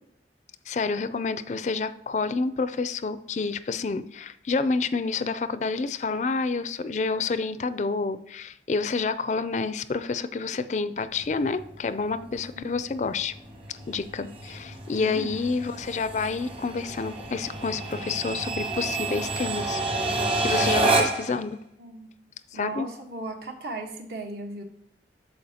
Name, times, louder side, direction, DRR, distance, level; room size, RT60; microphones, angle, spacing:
voice 1, 0.7-13.3 13.9-19.8 20.4-21.6 22.5-22.9, left 4 dB, 40° left, 13 dB, 0.3 m, -29 dB
sound 1, 11.1-21.4, right 2 dB, 30° right, 1.2 m, -29 dB
voice 2, 15.0-15.3 21.8-22.1 22.5-24.6, right 2 dB, 65° right, 3 dB, 1.2 m, -36 dB
13.0 x 4.5 x 2.8 m, 0.75 s
head